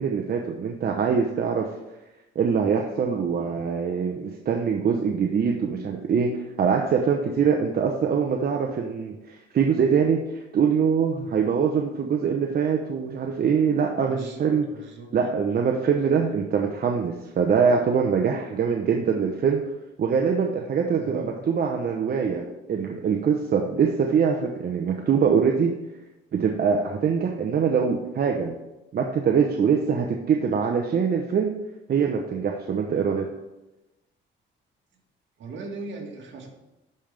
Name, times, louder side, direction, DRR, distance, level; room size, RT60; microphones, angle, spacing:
voice 1, 0.0-1.8 2.3-14.7 15.1-19.6 20.0-25.8 26.3-28.5 28.9-31.5 31.9-33.3, right 6 dB, 50° right, 2 dB, 0.8 m, -23 dB
voice 2, 14.0-15.2 20.9-21.4 35.4-36.5, right 3 dB, 70° right, 1 dB, 1.8 m, -39 dB
11.0 x 5.2 x 3.4 m, 0.97 s
cardioid pair, 90°, 20 cm